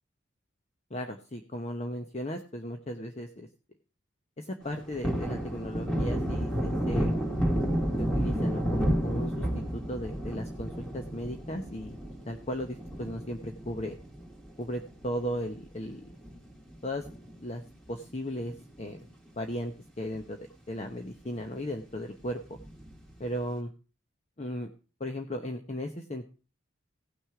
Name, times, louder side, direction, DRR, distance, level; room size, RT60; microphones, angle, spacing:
voice 1, 0.9-3.5 4.4-7.2 8.0-12.0 12.3-14.0 14.6-16.2 16.8-17.0 17.4-17.6 17.9-19.1 19.3-20.4 20.7-22.6 23.2-23.7 24.4-24.7 25.0-26.3, equal, 35° left, 5 dB, 0.9 m, -36 dB
Thunder, 4.6-15.4 15.7-15.8 16.2-17.7 18.0-18.1 18.5-19.3 19.7-19.8 20.1-20.2 22.6-23.1, equal, 5° left, 2.4 m, -31 dB
16.5 x 6.2 x 4.8 m, 0.35 s
head